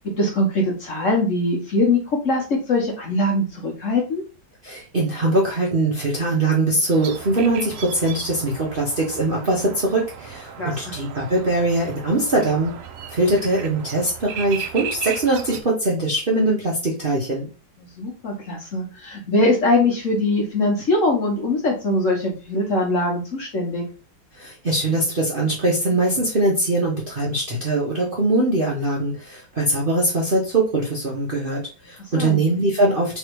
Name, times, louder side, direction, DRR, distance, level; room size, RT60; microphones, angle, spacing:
voice 1, 0.0-4.2 10.6-11.0 17.9-23.8 32.2-32.4, left 2 dB, 50° left, 0 dB, 1.3 m, -22 dB
voice 2, 4.6-12.7 13.1-17.5 24.4-33.2, right 2 dB, 40° right, -4 dB, 0.8 m, -22 dB
sound 1, 6.9-15.6, right 8 dB, 80° right, 0.7 m, -36 dB
3.5 x 3.1 x 4.5 m, 0.34 s
omnidirectional pair, 2.0 m